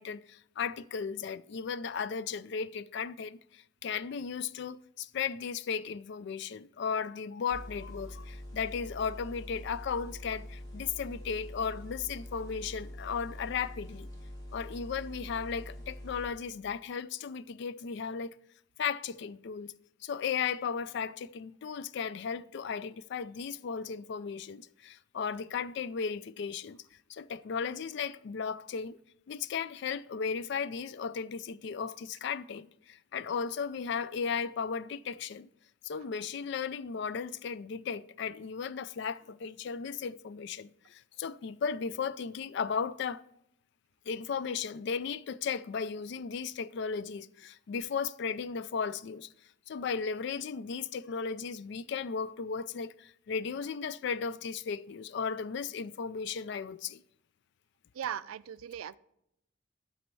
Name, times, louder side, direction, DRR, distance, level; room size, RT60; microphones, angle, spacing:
voice 1, 0.0-14.1 14.5-18.3 18.8-19.7 20.0-26.8 27.1-29.0 29.3-35.5 35.8-43.2 44.1-49.3 49.7-57.0, left 6 dB, 55° left, 0.3 m, -35 dB
sound 1, 7.5-16.3, equal, 20° left, 1.9 m, -45 dB
voice 2, 58.0-59.0, right 9 dB, 85° right, 0.3 m, -38 dB
12.0 x 4.2 x 4.5 m
head